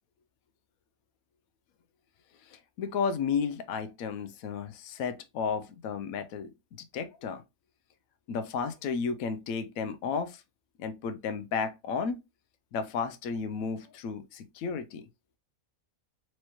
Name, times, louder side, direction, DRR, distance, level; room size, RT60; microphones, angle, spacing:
voice 1, 2.5-6.5 6.9-7.4 8.3-10.4 10.8-12.2 12.7-15.1, left 5 dB, 85° left, 1.0 m, -33 dB
4.6 x 3.1 x 2.8 m
omnidirectional pair, 1.4 m